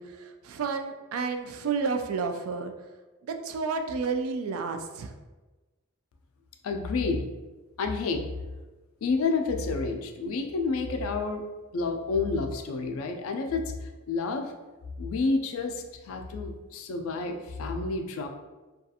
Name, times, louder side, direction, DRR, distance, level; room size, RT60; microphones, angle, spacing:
voice 1, 0.0-2.7 3.2-5.1, right 5 dB, 75° right, 6 dB, 0.3 m, -31 dB
voice 2, 6.6-7.3 7.8-8.2 9.0-11.4 11.7-14.5 15.0-18.3, left 4 dB, 70° left, 5 dB, 0.3 m, -29 dB
2.4 x 2.3 x 2.7 m, 1.2 s
head